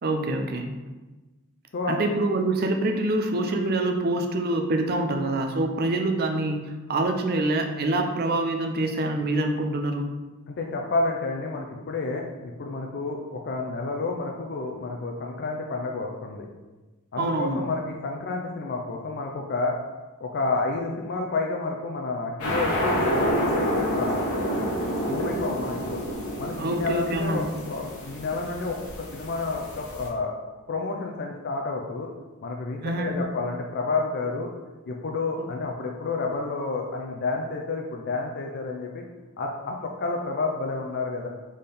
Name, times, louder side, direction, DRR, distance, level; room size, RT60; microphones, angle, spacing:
voice 1, 0.0-0.7 1.9-10.1 17.2-17.6 26.6-27.5 32.8-33.2 35.4-35.5, right 2 dB, 45° right, 5 dB, 0.5 m, -26 dB
voice 2, 10.5-16.5 17.1-19.7 20.2-24.2 25.1-26.0 26.4-30.3 30.7-32.1 32.4-34.5 34.9-39.0 39.4-41.3, left 3 dB, 50° left, 1 dB, 0.4 m, -30 dB
sound 1, 22.4-30.1, equal, 75° left, 1.2 m, -28 dB
4.1 x 3.7 x 3.4 m, 1.2 s
head